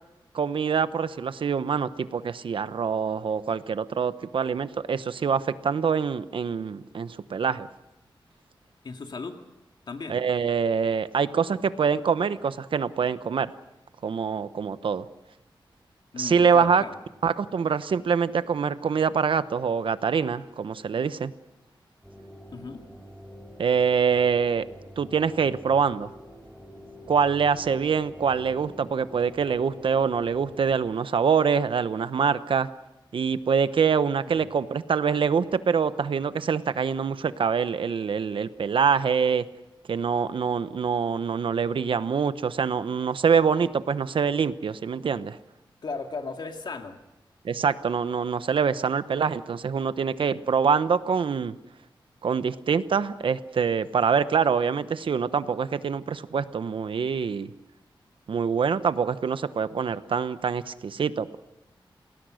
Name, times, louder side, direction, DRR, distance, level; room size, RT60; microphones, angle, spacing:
voice 1, 0.3-7.7 10.1-13.5 14.0-15.0 16.2-16.8 17.2-21.3 23.6-24.6 25.0-26.1 27.1-32.7 33.1-39.4 39.9-45.4 47.4-51.5 52.2-57.5 58.3-61.4, right 6 dB, 75° right, 13 dB, 1.0 m, -25 dB
voice 2, 8.8-9.4 9.9-10.2 16.1-17.0 22.5-22.8 34.3-34.5 45.8-47.0, left 4 dB, 55° left, 5 dB, 2.2 m, -36 dB
sound 1, 22.0-30.8, equal, ahead, 4.2 m, -47 dB
29.0 x 20.0 x 6.5 m, 0.93 s
wide cardioid pair, 155°, 9 cm